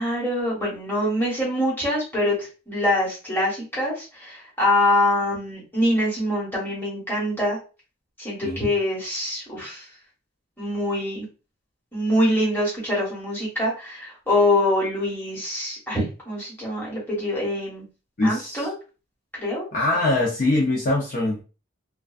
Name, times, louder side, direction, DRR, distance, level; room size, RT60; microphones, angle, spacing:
voice 1, 0.0-7.6 8.2-9.9 10.6-11.3 11.9-17.8 18.2-18.7 19.3-19.7, left 1 dB, 10° left, -7 dB, 1.1 m, -24 dB
voice 2, 18.2-18.7 19.7-21.4, left 2 dB, 45° left, -3 dB, 0.5 m, -22 dB
2.4 x 2.2 x 2.3 m, 0.33 s
head